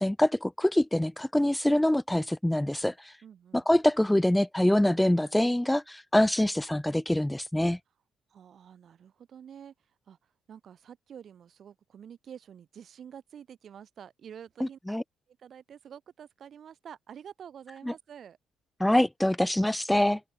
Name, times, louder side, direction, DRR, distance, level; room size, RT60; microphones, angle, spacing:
voice 1, 0.0-3.1 3.5-7.8 14.9-15.0 17.9-18.0 18.8-20.2, left 1 dB, 5° left, 0.6 m, -25 dB
voice 2, 3.2-3.7 8.3-15.0 15.3-18.4, right 8 dB, 60° right, 6.0 m, -48 dB
cardioid pair, 90°, 0 cm